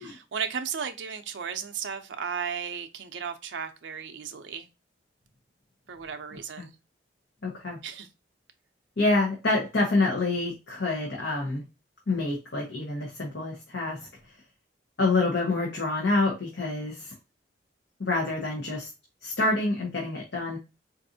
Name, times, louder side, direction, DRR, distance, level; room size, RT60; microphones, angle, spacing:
voice 1, 0.0-4.7 5.9-6.7 7.8-8.1, right 7 dB, 75° right, 0.5 m, -35 dB
voice 2, 7.4-7.8 9.0-11.6 12.1-14.0 15.0-17.1 18.0-18.9 19.2-20.6, left 2 dB, 70° left, 0.9 m, -27 dB
4.1 x 2.6 x 2.6 m
head